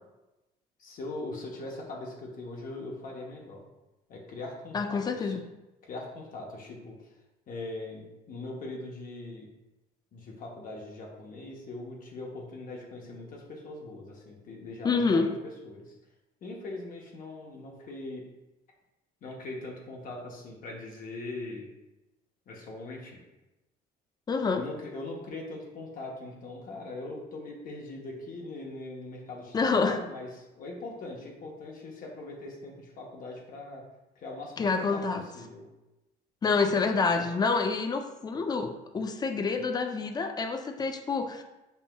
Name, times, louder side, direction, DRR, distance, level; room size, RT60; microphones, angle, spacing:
voice 1, 0.8-3.6 4.1-5.3 5.8-6.9 7.5-9.5 10.1-15.3 15.6-15.9 16.4-18.2 19.2-21.7 22.5-23.2 24.6-33.8 34.2-34.7 34.9-35.0 35.3-35.6, left 2 dB, 55° left, -1 dB, 0.9 m, -41 dB
voice 2, 4.7-5.5 14.8-15.3 24.3-24.6 29.5-30.0 34.6-35.3 36.4-41.4, left 4 dB, 25° left, 6 dB, 0.4 m, -27 dB
5.4 x 2.9 x 2.2 m, 1.0 s
cardioid pair, 110°, 17 cm